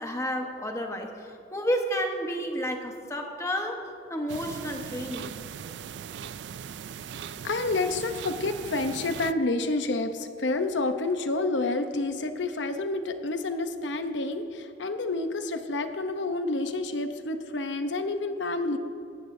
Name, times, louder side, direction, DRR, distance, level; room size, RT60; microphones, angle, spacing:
voice 1, 0.0-5.4, equal, 15° left, 3 dB, 1.1 m, -31 dB
sound 1, 4.3-9.3, right 8 dB, 70° right, 0.3 m, -39 dB
voice 2, 7.2-18.8, left 2 dB, 80° left, 8 dB, 0.8 m, -29 dB
17.5 x 13.0 x 2.7 m, 2.6 s
head